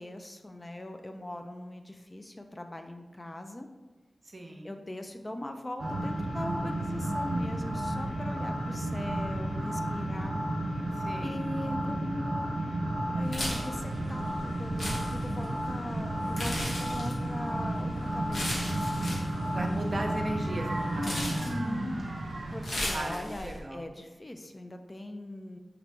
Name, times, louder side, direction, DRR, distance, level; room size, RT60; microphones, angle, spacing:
voice 1, 0.0-3.7 4.6-10.3 10.9-12.5 13.1-16.5 16.8-18.8 21.0-22.1 22.5-25.6, left 1 dB, 30° left, 5 dB, 0.4 m, -40 dB
voice 2, 4.3-4.7 11.0-11.5 19.5-21.5 22.9-23.8, right 1 dB, 50° right, 2 dB, 0.7 m, -37 dB
sound 1, 5.8-22.7, right 1 dB, 85° right, 0.5 m, -32 dB
sound 2, 13.2-23.6, left 1 dB, 80° left, 1.1 m, -38 dB
4.9 x 3.1 x 3.4 m, 1.2 s
cardioid pair, 55°, 0 cm